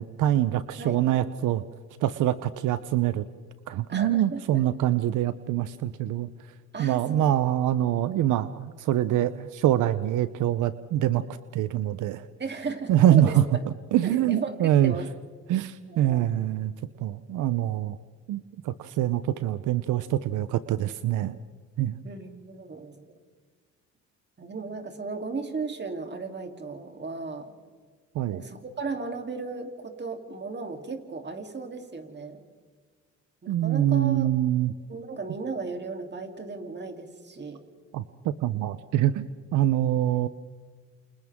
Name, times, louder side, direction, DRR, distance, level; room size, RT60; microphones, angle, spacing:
voice 1, 0.0-1.6 2.0-3.2 3.7-6.3 6.8-11.2 11.5-12.2 12.9-13.4 13.9-14.9 15.5-16.7 17.0-18.0 18.3-21.3 21.8-22.0 28.2-28.4 33.5-34.7 37.9-39.2 39.5-40.3, right 12 dB, 85° right, 13 dB, 0.8 m, -24 dB
voice 2, 3.9-4.6 6.7-7.3 12.4-13.4 14.0-15.1 15.9-16.4 22.0-23.1 24.4-27.5 28.3-32.4 33.4-34.3 34.9-37.6, right 4 dB, 35° right, 4 dB, 3.3 m, -35 dB
29.0 x 29.0 x 3.7 m, 1.5 s
cardioid pair, 90°, 30 cm